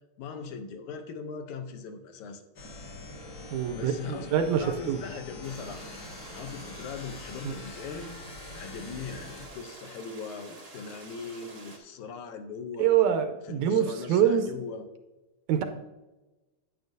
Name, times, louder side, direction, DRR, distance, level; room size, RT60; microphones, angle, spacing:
voice 1, 0.2-2.4 3.7-5.9 6.3-8.1 8.5-12.9 13.5-14.8, left 5 dB, 75° left, 7 dB, 2.1 m, -40 dB
sound 1, 2.6-9.5, left 2 dB, 50° left, 1.6 m, -44 dB
voice 2, 3.5-5.0 7.4-7.5 12.8-14.5 15.5-15.6, right 9 dB, 80° right, 7 dB, 1.9 m, -25 dB
sound 2, 5.4-11.8, right 2 dB, 45° right, 0.7 m, -48 dB
10.0 x 9.2 x 2.7 m, 1.1 s
omnidirectional pair, 3.6 m